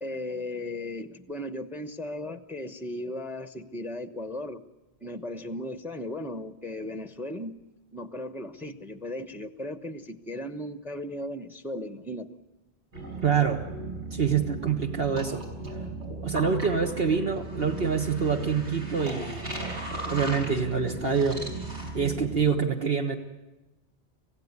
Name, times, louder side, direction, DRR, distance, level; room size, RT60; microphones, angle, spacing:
voice 1, 0.0-4.6 5.0-7.6 7.9-12.3, left 1 dB, ahead, 10 dB, 0.9 m, -36 dB
sound 1, 12.9-22.5, right 2 dB, 75° right, 6.1 m, -36 dB
voice 2, 13.2-13.6 14.1-15.4 16.2-19.6 20.1-21.4 21.9-23.2, right 6 dB, 60° right, 2 dB, 1.5 m, -26 dB
27.0 x 16.0 x 9.6 m, 1.1 s
omnidirectional pair, 1.2 m